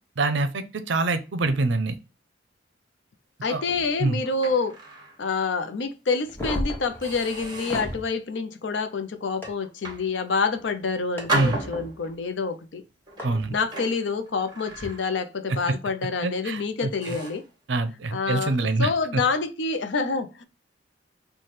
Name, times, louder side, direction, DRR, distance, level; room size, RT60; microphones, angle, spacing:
voice 1, 0.2-2.0 3.5-3.6 4.0-4.2 11.3-11.6 13.2-13.6 16.2-17.2 17.7-18.9, right 3 dB, 70° right, 0.5 m, -25 dB
voice 2, 3.4-4.8 5.2-12.8 13.5-17.4 18.1-20.4, left 4 dB, 70° left, 0.5 m, -27 dB
sound 1, 3.4-5.2 5.7-5.8 6.4-6.5 7.0-8.1 8.6-9.0 9.6-10.7 11.3-12.3 13.1-15.4 15.7-16.0 16.5-16.6 17.0-17.5, right 1 dB, 25° right, 1.0 m, -35 dB
sound 2, 6.3-8.0 9.4-9.5 11.2-11.3 13.2-13.3 14.7-14.9, equal, 10° left, 1.0 m, -32 dB
3.2 x 2.2 x 4.2 m
head